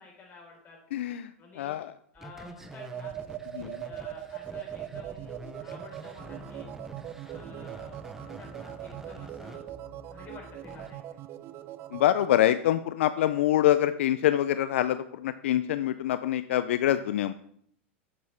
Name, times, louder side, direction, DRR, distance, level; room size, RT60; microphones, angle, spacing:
voice 1, 0.0-0.8 1.4-1.8 2.1-3.1 3.5-6.7 7.2-9.6 10.1-11.2, left 4 dB, 30° left, -2 dB, 4.0 m, -50 dB
voice 2, 0.9-1.3 1.6-1.9 3.5-3.8 11.9-17.3, left 12 dB, 75° left, 13 dB, 0.4 m, -25 dB
sound 1, 2.1-10.9, right 1 dB, 5° right, 0.7 m, -46 dB
sound 2, 2.7-12.5, right 13 dB, 35° right, 0.4 m, -41 dB
8.7 x 8.0 x 3.3 m, 0.67 s
hypercardioid pair, 125°, 7 cm